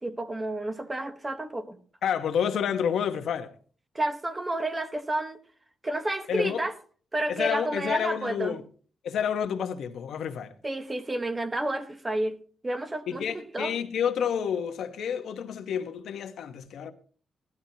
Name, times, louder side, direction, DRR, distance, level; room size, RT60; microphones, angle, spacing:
voice 1, 0.0-1.8 3.9-5.4 5.8-6.7 7.1-8.6 10.6-12.4 12.6-13.7, right 1 dB, 15° right, 0.9 m, -30 dB
voice 2, 2.0-3.5 6.3-6.6 7.3-8.6 9.0-10.5 13.1-16.9, left 8 dB, 80° left, 1.1 m, -29 dB
15.5 x 12.0 x 2.8 m
wide cardioid pair, 170°, 0 cm